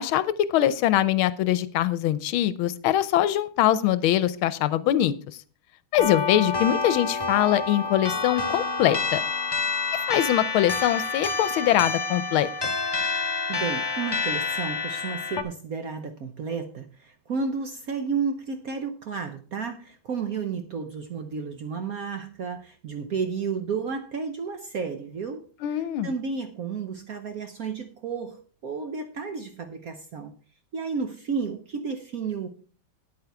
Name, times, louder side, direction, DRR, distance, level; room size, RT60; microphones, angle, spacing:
voice 1, 0.0-5.1 5.9-9.2 9.9-12.5 25.6-26.1, left 12 dB, 80° left, 16 dB, 1.4 m, -23 dB
sound 1, 6.0-15.4, left 4 dB, 40° left, 0.3 m, -28 dB
voice 2, 13.5-25.4 25.7-30.3 30.7-32.5, right 5 dB, 60° right, 7 dB, 0.9 m, -32 dB
9.6 x 8.7 x 4.6 m, 0.40 s
omnidirectional pair, 2.3 m